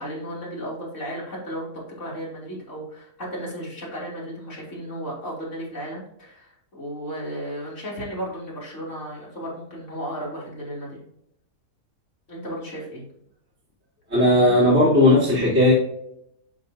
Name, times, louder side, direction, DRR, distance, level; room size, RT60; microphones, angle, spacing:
voice 1, 0.0-1.7 2.0-11.1 12.3-13.0, equal, 45° left, -5 dB, 3.2 m, -34 dB
voice 2, 14.1-15.7, left 1 dB, 50° right, -11 dB, 3.1 m, -16 dB
11.0 x 3.9 x 2.7 m, 0.76 s
omnidirectional pair, 1.7 m